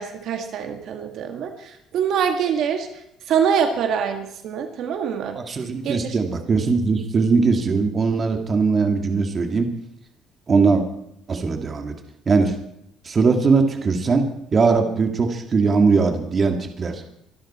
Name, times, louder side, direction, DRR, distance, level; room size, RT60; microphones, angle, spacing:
voice 1, 0.0-2.9 3.3-5.4 5.8-6.2, right 7 dB, 60° right, 5 dB, 1.8 m, -24 dB
voice 2, 5.4-9.7 10.5-10.8 11.3-12.0 12.3-12.5 13.0-17.0, right 4 dB, 30° right, 4 dB, 2.1 m, -20 dB
24.0 x 12.5 x 4.3 m, 0.76 s
cardioid pair, 135°, 0 cm